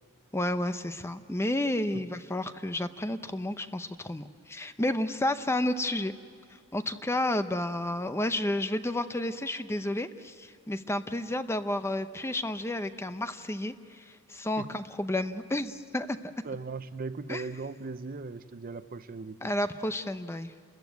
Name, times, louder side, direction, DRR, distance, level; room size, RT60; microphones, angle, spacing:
voice 1, 0.3-6.1 6.7-16.2 17.3-17.4 19.4-20.5, left 1 dB, 10° left, 10 dB, 0.6 m, -31 dB
voice 2, 16.4-19.5, right 4 dB, 40° right, 12 dB, 0.6 m, -38 dB
28.5 x 14.0 x 9.3 m, 2.2 s
head